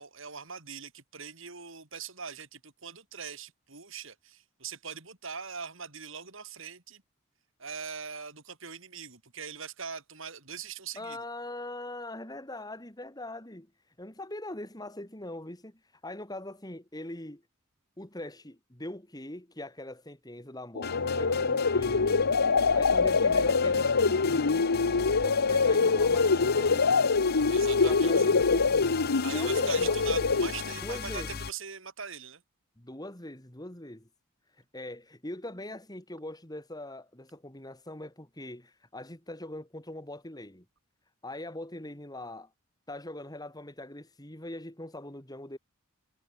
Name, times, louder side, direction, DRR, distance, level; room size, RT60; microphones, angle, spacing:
voice 1, 0.0-7.0 7.6-11.2 27.5-28.2 29.2-32.4, right 6 dB, 65° right, 4.7 m, -41 dB
voice 2, 11.0-13.7 14.0-17.4 18.0-22.4 22.7-24.8 25.0-27.1 27.8-29.0 29.3-30.4 30.8-31.4 32.8-34.1 34.7-40.6 41.2-42.5 42.9-45.6, left 1 dB, 20° left, 2.8 m, -42 dB
sound 1, 20.8-30.7, left 4 dB, 80° left, 0.9 m, -25 dB
sound 2, 20.8-31.5, left 6 dB, 45° left, 0.8 m, -38 dB
head